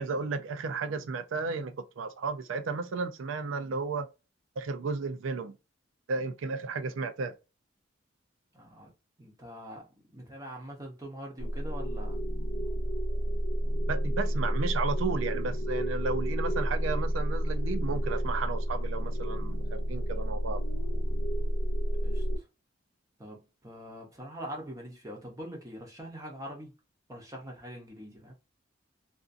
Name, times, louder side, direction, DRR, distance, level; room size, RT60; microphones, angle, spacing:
voice 1, 0.0-4.1 4.6-5.5 6.1-7.3 13.9-20.6, right 4 dB, 90° right, 0.5 m, -33 dB
voice 2, 8.5-8.9 9.2-9.9 10.1-12.2 22.0-22.2 23.2-26.7 27.1-28.3, equal, 15° right, 0.7 m, -43 dB
sound 1, 11.4-22.4, equal, 60° left, 0.6 m, -30 dB
2.6 x 2.4 x 2.4 m
head